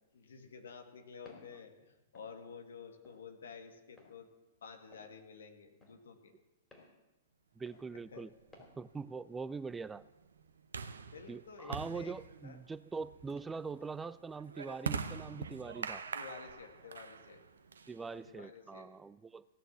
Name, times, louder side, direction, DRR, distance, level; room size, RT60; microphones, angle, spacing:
voice 1, 0.1-4.3 4.6-6.3 8.1-8.3 11.1-12.1 12.4-12.6 16.1-17.4 18.3-18.9, left 6 dB, 65° left, 4 dB, 1.9 m, -51 dB
Walk footsteps, 1.3-1.5 2.1-2.3 3.0-3.2 4.0-4.1 4.9-5.1 5.8-6.0 6.7-6.9 7.7-7.9 8.5-8.7, left 2 dB, 15° left, 3.6 m, -58 dB
voice 2, 7.6-8.3 8.8-10.0 11.3-16.0 17.9-19.5, right 4 dB, 10° right, 17 dB, 0.3 m, -43 dB
sound 1, 8.0-18.4, right 5 dB, 70° right, 0.8 m, -44 dB
16.0 x 6.7 x 7.4 m, 1.1 s
figure-of-eight pair, 105°, 0 cm